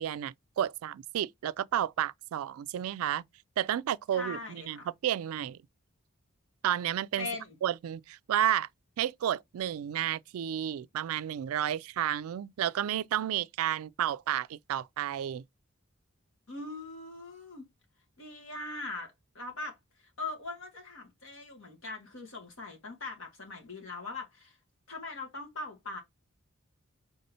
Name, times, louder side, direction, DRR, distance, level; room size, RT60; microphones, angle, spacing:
voice 1, 0.0-3.2 3.6-5.6 6.6-7.3 7.6-8.7 9.0-15.4, right 10 dB, 85° right, 0.3 m, -31 dB
voice 2, 4.1-4.9 7.2-7.6 16.5-17.7 18.2-19.8 20.2-24.6 24.9-26.0, left 3 dB, 70° left, 2.1 m, -41 dB
5.3 x 3.5 x 2.7 m
head